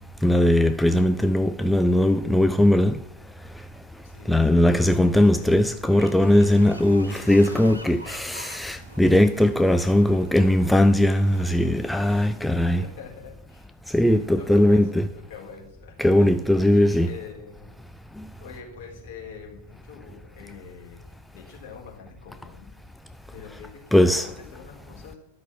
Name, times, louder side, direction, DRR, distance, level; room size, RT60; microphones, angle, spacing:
voice 1, 0.2-3.0 4.3-12.8 13.9-15.1 16.0-17.1 23.9-24.3, left 1 dB, 5° left, 0.4 m, -19 dB
voice 2, 4.0-4.8 5.1-5.6 12.5-13.7 14.0-16.3 16.7-17.7 18.4-22.7 23.3-25.2, left 6 dB, 50° left, 3.9 m, -44 dB
sound 1, 5.8-12.3, equal, 85° right, 1.3 m, -45 dB
12.0 x 6.1 x 7.4 m
figure-of-eight pair, 90°, 0 cm